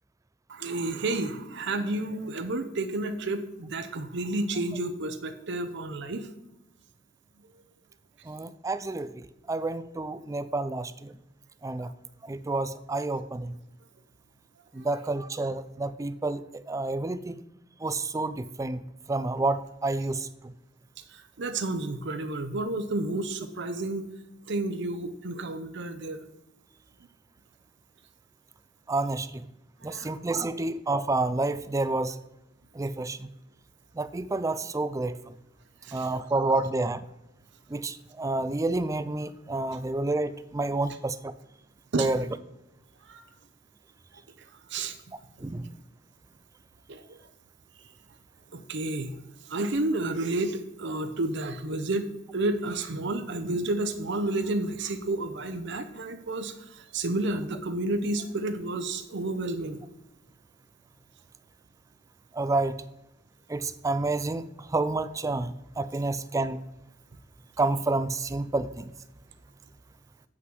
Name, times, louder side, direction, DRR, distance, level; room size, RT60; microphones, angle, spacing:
voice 1, 0.5-6.3 11.8-11.9 14.8-14.9 21.1-24.1 24.5-26.2 29.8-30.1 35.8-36.1 41.9-42.1 43.1-43.2 44.7-45.0 46.9-47.2 48.5-49.2 49.5-59.8, right 2 dB, 65° right, 8 dB, 0.7 m, -31 dB
voice 2, 8.3-11.1 11.6-11.9 12.2-13.6 14.7-17.4 17.8-18.8 19.1-20.3 28.9-29.4 29.8-32.2 32.7-33.3 34.0-35.2 35.9-37.0 37.7-41.3 42.0-42.3 45.4-45.8 62.3-62.8 63.5-66.6 67.6-68.9, right 2 dB, 15° right, 14 dB, 0.4 m, -29 dB
7.8 x 5.9 x 6.2 m, 0.93 s
head